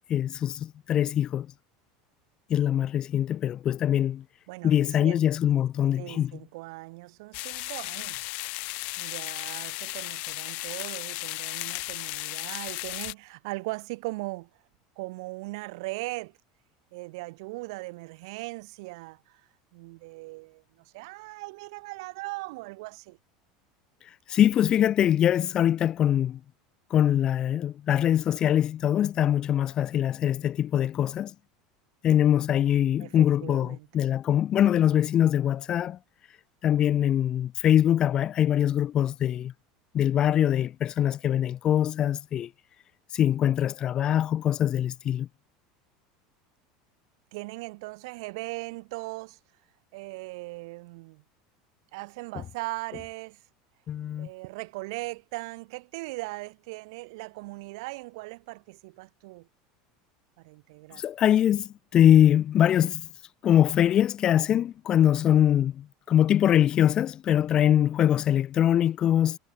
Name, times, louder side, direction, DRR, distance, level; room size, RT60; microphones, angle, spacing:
voice 1, 0.1-1.5 2.5-4.2 4.6-6.3 24.3-26.4 26.9-31.3 32.0-36.0 36.6-39.5 39.9-42.5 43.1-45.3 53.9-54.3 61.0-63.0 63.4-69.4, left 10 dB, 30° left, 0.5 m, -23 dB
voice 2, 4.5-5.2 6.0-8.2 9.0-14.5 15.0-16.4 16.9-23.2 33.0-33.9 47.3-49.4 49.9-51.2 51.9-53.4 54.2-59.5 60.4-61.0, right 24 dB, 70° right, 2.4 m, -39 dB
sound 1, 7.3-13.1, left 26 dB, 55° left, 2.2 m, -35 dB
supercardioid pair, 150°, 3 cm